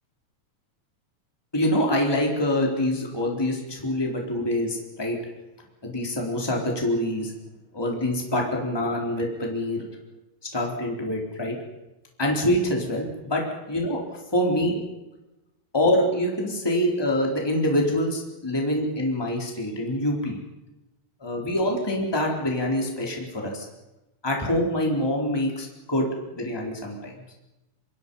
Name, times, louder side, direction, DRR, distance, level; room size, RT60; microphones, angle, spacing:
voice 1, 1.5-5.2 5.8-7.3 7.7-9.9 10.5-11.6 12.2-13.4 13.7-14.0 14.3-14.8 15.7-20.4 21.2-23.6 24.2-27.1, left 1 dB, 5° left, -1 dB, 4.0 m, -25 dB
28.0 x 26.0 x 5.6 m, 0.97 s
omnidirectional pair, 3.4 m